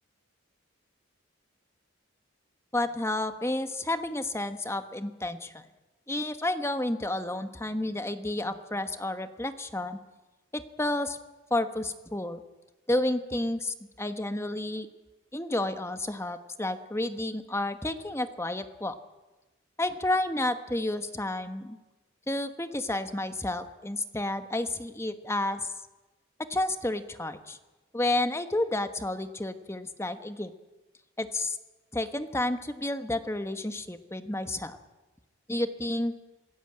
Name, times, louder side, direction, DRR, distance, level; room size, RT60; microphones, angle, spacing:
voice 1, 2.7-5.6 6.1-10.0 10.5-11.2 11.5-12.4 12.9-14.9 15.3-19.0 19.8-21.8 22.3-25.7 26.5-27.6 27.9-30.5 31.2-31.6 31.9-34.8 35.5-36.1, left 1 dB, 15° left, 9 dB, 1.2 m, -31 dB
27.0 x 16.5 x 8.8 m, 1.2 s
head